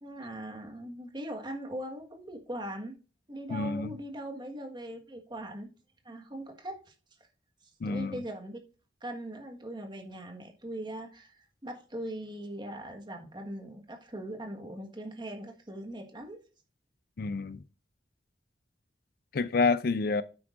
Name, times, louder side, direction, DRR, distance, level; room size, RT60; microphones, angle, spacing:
voice 1, 0.0-3.0 3.3-5.7 6.0-6.9 7.8-8.6 9.0-16.4, right 1 dB, 25° right, 1.5 m, -40 dB
voice 2, 3.5-3.9 7.8-8.2 17.2-17.6 19.3-20.2, left 4 dB, 55° left, 0.4 m, -28 dB
9.5 x 8.1 x 2.5 m
head